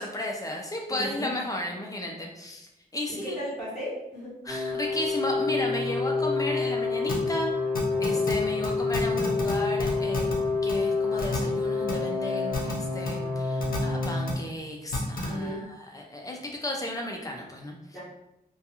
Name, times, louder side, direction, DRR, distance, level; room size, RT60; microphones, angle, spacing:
voice 1, 0.0-3.4 4.4-7.5 8.0-10.3 10.6-18.0, left 1 dB, 20° left, 1 dB, 0.4 m, -34 dB
voice 2, 0.9-1.3 3.1-4.3 8.0-8.2 15.3-15.6 17.9-18.0, equal, 5° right, -10 dB, 1.0 m, -35 dB
sound 1, 4.5-14.3, left 4 dB, 45° right, 1.0 m, -28 dB
sound 2, 7.1-7.2 7.7-8.3 8.6-8.7 8.9-9.5 9.8-10.3 10.7-10.8 11.2-11.4 11.9-12.0 12.5-12.7 13.0-13.1 13.6-14.3 14.9-15.3, left 3 dB, 65° left, 0.6 m, -30 dB
2.3 x 2.2 x 2.8 m, 0.87 s
wide cardioid pair, 175°, 16 cm